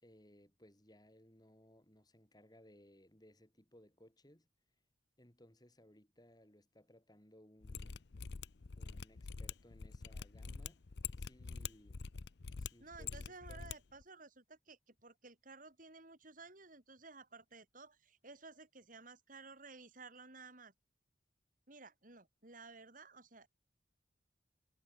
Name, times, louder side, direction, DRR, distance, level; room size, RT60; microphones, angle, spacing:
voice 1, 0.0-4.5 5.2-8.1 8.8-10.8 11.2-12.0 12.6-13.7, left 1 dB, 20° left, 3.5 m, -63 dB
Mechanisms, 7.6-13.8 14.0-14.1, left 5 dB, 60° left, 0.6 m, -45 dB
voice 2, 12.8-20.7 21.7-23.5, right 3 dB, 45° right, 3.9 m, -55 dB
head